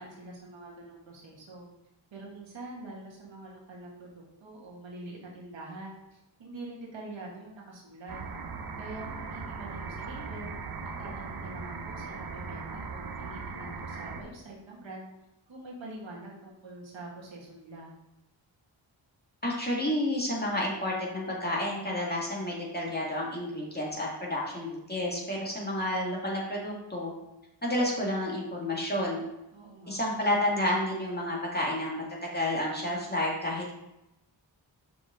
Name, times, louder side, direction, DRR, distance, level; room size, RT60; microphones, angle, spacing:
voice 1, 0.0-1.7 2.1-8.2 8.8-10.5 11.0-15.0 15.5-17.9 29.5-30.0, right 2 dB, 75° right, -2 dB, 1.9 m, -45 dB
rain slow motion, 8.1-14.2, right 4 dB, 50° right, 0.8 m, -39 dB
voice 2, 19.4-27.1 27.6-29.2 29.9-33.7, left 1 dB, 20° left, -3 dB, 1.9 m, -30 dB
5.9 x 4.9 x 3.7 m, 0.91 s
cardioid pair, 60°, 46 cm